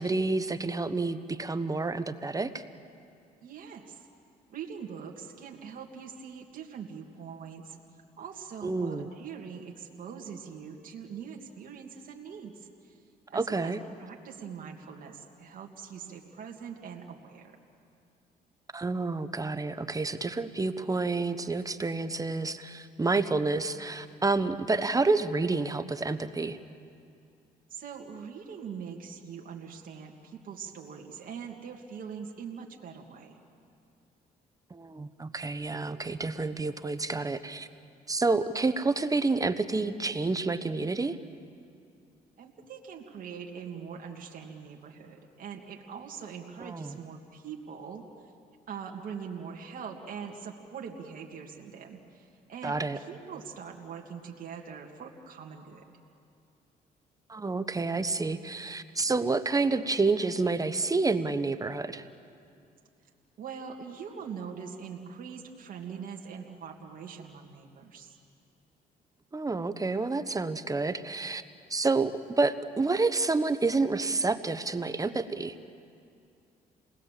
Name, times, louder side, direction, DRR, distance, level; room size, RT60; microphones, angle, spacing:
voice 1, 0.0-2.6 8.6-9.1 13.3-13.8 18.7-26.6 34.7-37.7 38.1-41.2 46.6-47.0 52.6-53.0 57.3-62.0 69.3-71.4 71.7-75.5, right 3 dB, 20° right, 11 dB, 1.0 m, -29 dB
voice 2, 3.4-4.1 4.5-7.8 8.2-13.0 13.3-13.7 14.0-17.5 27.7-33.4 42.4-48.3 48.7-55.8 63.4-68.2, right 6 dB, 60° right, 1 dB, 2.4 m, -42 dB
28.5 x 20.0 x 7.5 m, 2.4 s
cardioid pair, 85°, 16 cm